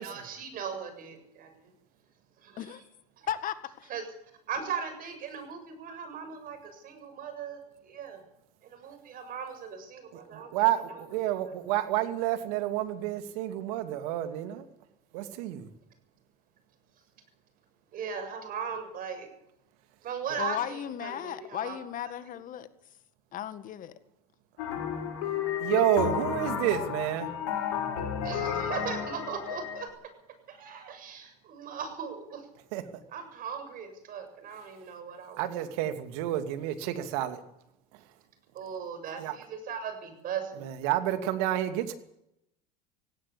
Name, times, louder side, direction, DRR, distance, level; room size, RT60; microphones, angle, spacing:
voice 1, 0.0-1.7 2.4-2.8 3.2-3.3 3.9-4.0 4.5-8.2 8.6-10.5 10.9-11.0 17.9-19.3 20.0-21.8 28.2-29.9 30.5-32.4 33.1-35.5 38.5-40.6, right 7 dB, 45° right, 8 dB, 7.4 m, -38 dB
voice 2, 3.3-3.9 20.4-22.7 23.3-23.9, left 10 dB, 45° left, 12 dB, 1.9 m, -35 dB
voice 3, 10.3-12.8 13.3-14.6 15.1-15.7 25.6-27.3 32.7-33.0 35.4-37.4 39.2-39.4 40.6-41.9, right 13 dB, 70° right, 9 dB, 2.7 m, -29 dB
sound 1, 24.6-29.9, left 8 dB, 70° left, 7.2 m, -32 dB
17.5 x 17.5 x 8.7 m, 0.80 s
hypercardioid pair, 95°, 20 cm